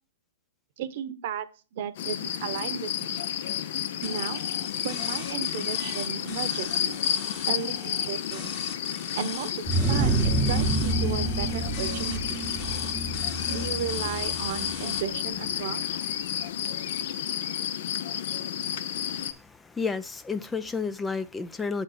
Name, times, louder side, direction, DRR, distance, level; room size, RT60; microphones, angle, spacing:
voice 1, 0.8-1.5 1.7-3.2 4.0-4.4 4.8-7.0 7.5-8.6 9.1-12.6 13.5-15.8, right 8 dB, 55° right, 0.9 m, -34 dB
sound 1, 1.9-19.3, left 9 dB, 55° left, 0.6 m, -31 dB
sound 2, 4.0-15.0, left 5 dB, 35° left, 1.7 m, -41 dB
sound 3, 9.7-15.2, right 2 dB, 20° right, 0.8 m, -28 dB
voice 2, 19.0-21.8, left 5 dB, 10° left, 0.3 m, -32 dB
7.4 x 4.0 x 6.5 m
hypercardioid pair, 135°, 0 cm